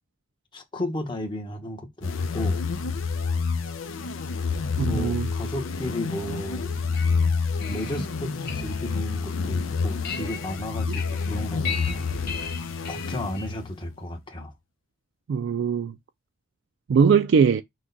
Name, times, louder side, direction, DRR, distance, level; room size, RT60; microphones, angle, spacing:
voice 1, 0.5-2.6 4.8-6.7 7.7-12.0 12.9-14.5, left 1 dB, 25° left, 1.0 m, -34 dB
sound 1, 2.0-13.8, left 4 dB, 85° left, 0.6 m, -28 dB
voice 2, 4.8-5.3 15.3-15.9 16.9-17.6, right 6 dB, 65° right, 0.3 m, -20 dB
sound 2, 6.7-13.5, left 5 dB, 50° left, 1.1 m, -38 dB
6.2 x 2.2 x 3.9 m
head